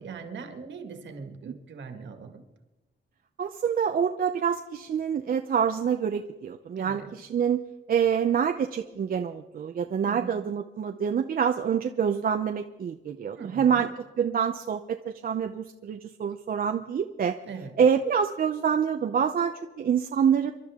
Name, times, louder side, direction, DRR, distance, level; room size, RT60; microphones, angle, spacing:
voice 1, 0.0-2.4 6.8-7.1 10.0-10.3 13.4-13.9 17.4-17.8, right 5 dB, 65° right, 6 dB, 2.0 m, -40 dB
voice 2, 3.4-7.6 7.9-13.9 14.2-17.4 17.8-20.5, right 7 dB, 45° right, 6 dB, 0.6 m, -26 dB
27.0 x 12.0 x 3.7 m, 1.1 s
wide cardioid pair, 165°, 20 cm